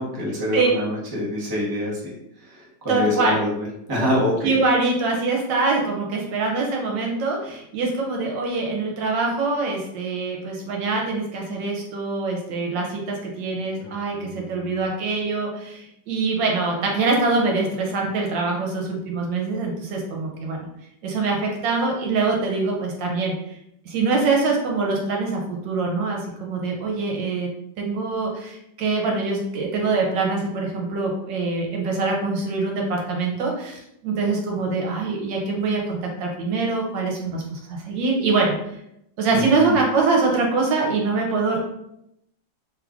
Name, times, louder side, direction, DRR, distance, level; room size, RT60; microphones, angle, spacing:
voice 1, 0.0-2.0 2.5-4.6 13.8-14.8 39.3-39.7, left 1 dB, 20° right, -6 dB, 0.6 m, -26 dB
voice 2, 2.9-3.4 4.4-20.6 21.0-23.5 23.8-27.5 27.8-38.5 39.2-41.6, right 3 dB, 80° right, 0 dB, 1.5 m, -24 dB
3.2 x 2.4 x 3.5 m, 0.79 s
omnidirectional pair, 2.0 m